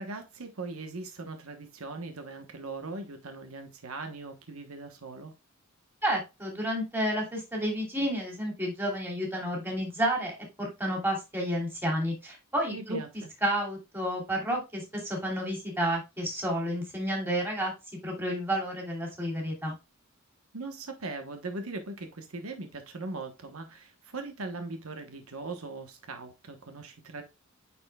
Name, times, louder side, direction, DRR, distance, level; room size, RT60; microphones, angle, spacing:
voice 1, 0.0-5.3 12.7-13.3 20.5-27.2, right 3 dB, 85° right, 1.2 m, -40 dB
voice 2, 6.0-13.0 13.4-17.7 18.0-19.7, equal, 10° right, 2.8 m, -30 dB
9.4 x 4.5 x 2.3 m
head